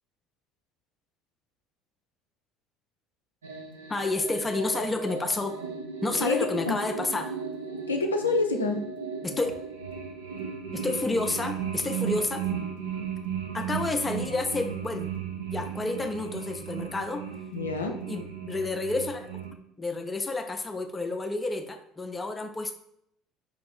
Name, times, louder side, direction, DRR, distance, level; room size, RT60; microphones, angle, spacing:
sound 1, 3.4-19.5, right 7 dB, 75° right, 0.5 m, -36 dB
voice 1, 3.9-5.6 6.0-7.3 9.2-9.5 10.7-12.5 13.5-15.1 15.5-17.2 18.1-19.3 19.8-22.7, left 2 dB, 20° left, 6 dB, 0.5 m, -30 dB
voice 2, 6.2-6.8 7.9-8.9 17.5-18.0, left 3 dB, 80° left, 3 dB, 0.3 m, -27 dB
4.8 x 2.5 x 3.2 m, 0.74 s
figure-of-eight pair, 60°, 0 cm